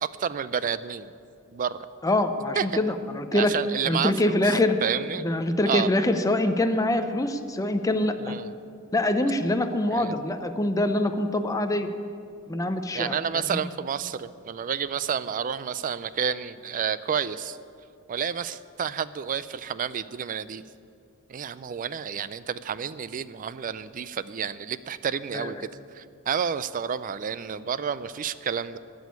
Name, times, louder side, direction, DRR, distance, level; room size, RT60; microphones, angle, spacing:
voice 1, 0.0-1.1 1.5-1.9 2.6-2.7 3.3-4.5 4.8-5.3 5.7-5.9 8.2-8.5 9.9-10.2 12.9-17.6 18.1-20.6 21.3-25.7 25.9-28.8, right 7 dB, 40° right, 16 dB, 0.4 m, -30 dB
voice 2, 2.0-3.5 3.8-4.8 5.2-8.4 8.9-11.9 12.5-13.6 25.3-25.7, left 1 dB, 15° left, 7 dB, 0.6 m, -25 dB
12.5 x 6.3 x 9.5 m, 2.4 s
head